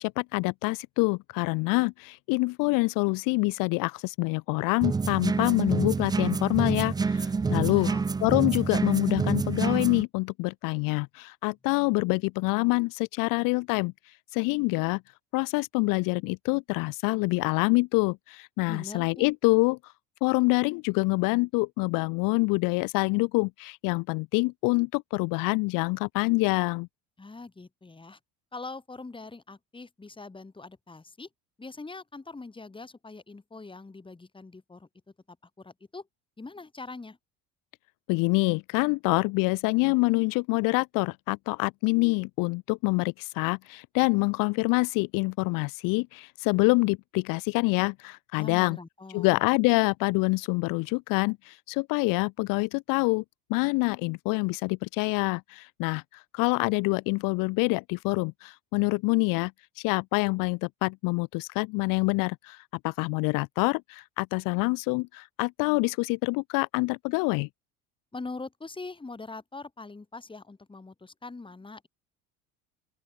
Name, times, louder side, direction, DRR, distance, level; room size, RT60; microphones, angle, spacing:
voice 1, 0.0-7.9 8.2-15.0 15.3-19.9 20.2-26.9 38.1-48.8 49.1-53.2 53.5-67.5, left 27 dB, 65° left, 0.6 m, -26 dB
sound 1, 4.8-10.0, right 4 dB, 10° right, 0.5 m, -27 dB
voice 2, 7.5-8.1 18.7-19.3 27.2-28.2 28.5-31.3 31.6-34.9 35.3-36.1 36.4-37.2 48.4-49.3 68.1-71.9, left 3 dB, 15° left, 3.1 m, -42 dB
open air
supercardioid pair, 105°, 36 cm